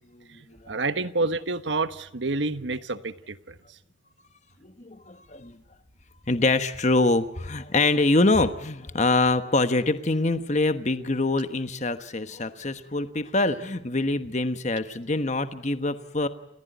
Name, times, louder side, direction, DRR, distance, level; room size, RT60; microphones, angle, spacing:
voice 1, 0.1-0.8 4.6-5.6 6.3-16.3, left 2 dB, 40° left, 10 dB, 1.2 m, -25 dB
voice 2, 0.7-3.5, right 3 dB, 80° right, 12 dB, 1.2 m, -28 dB
29.5 x 15.5 x 9.3 m, 0.90 s
head